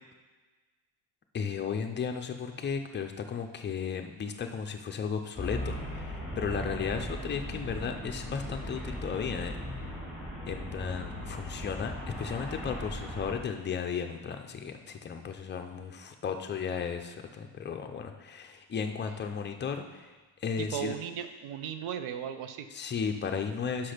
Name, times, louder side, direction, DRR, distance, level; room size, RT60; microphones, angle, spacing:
voice 1, 1.3-9.6 9.8-9.9 10.5-20.1 20.4-20.9 22.7-23.9, left 6 dB, 25° left, 5 dB, 0.4 m, -35 dB
Traffic noise roadway noise, 5.4-13.4, equal, ahead, 1.8 m, -38 dB
voice 2, 20.6-22.7, right 9 dB, 75° right, 9 dB, 0.7 m, -36 dB
6.1 x 5.9 x 5.0 m, 1.3 s
cardioid pair, 145°, 50 cm